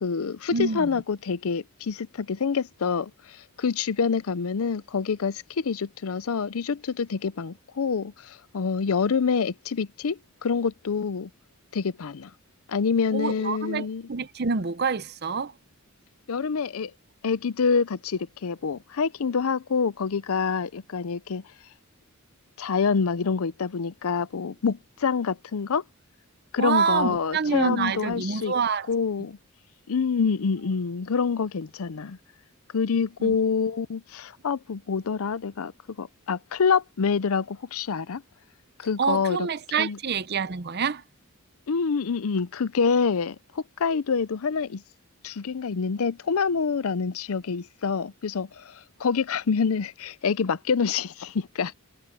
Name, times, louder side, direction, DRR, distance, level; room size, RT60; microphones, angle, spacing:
voice 1, 0.0-11.3 11.7-12.3 12.7-14.1 16.3-16.9 17.2-21.4 22.6-25.8 26.5-28.5 28.9-29.4 29.9-32.2 32.7-35.7 36.0-38.2 38.8-39.5 39.8-40.0 41.7-44.8 45.2-51.7, left 5 dB, 75° left, 0.5 m, -26 dB
voice 2, 0.5-0.9 13.1-15.5 26.6-28.9 33.2-33.3 39.0-41.0, right 5 dB, 50° right, 0.7 m, -27 dB
head